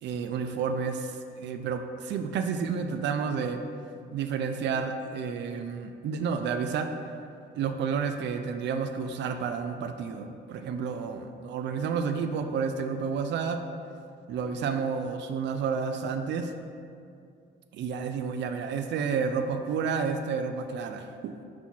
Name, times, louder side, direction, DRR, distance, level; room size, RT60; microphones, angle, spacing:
voice 1, 0.0-3.6 4.1-6.9 7.6-13.6 14.3-16.5 17.7-21.3, right 6 dB, 65° right, 7 dB, 0.4 m, -30 dB
5.7 x 4.2 x 4.4 m, 2.4 s
cardioid pair, 90°, 20 cm